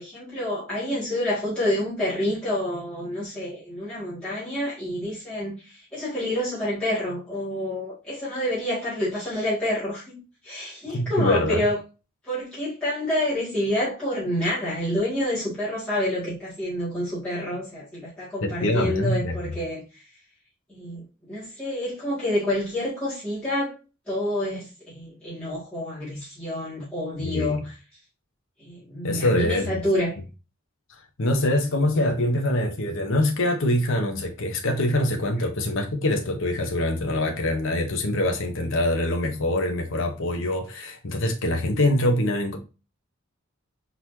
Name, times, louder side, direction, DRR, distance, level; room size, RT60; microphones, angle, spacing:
voice 1, 0.0-11.8 12.2-20.0 20.7-23.8 24.1-27.7 28.6-30.2, left 1 dB, 5° left, 2.0 m, -28 dB
voice 2, 10.9-11.6 18.4-19.5 27.3-27.6 29.0-29.8 31.2-42.6, left 1 dB, 65° left, 0.8 m, -24 dB
4.6 x 3.9 x 2.7 m
head